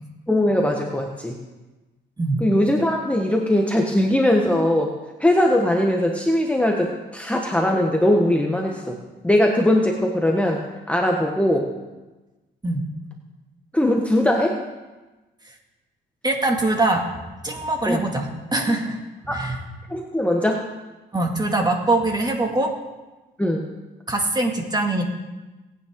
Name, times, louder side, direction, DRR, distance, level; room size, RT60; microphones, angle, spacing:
voice 1, 0.3-1.4 2.4-4.9 5.2-9.0 9.2-11.7 13.7-14.6 17.9-18.0 19.3-19.4 19.9-20.7 23.4-23.7, left 1 dB, 5° left, 1 dB, 1.2 m, -20 dB
voice 2, 16.2-17.0 17.4-19.0 19.2-19.6 21.1-22.7 24.1-25.0, right 2 dB, 20° right, 2 dB, 2.2 m, -22 dB
19.0 x 9.2 x 3.8 m, 1.2 s
cardioid pair, 90°, 20 cm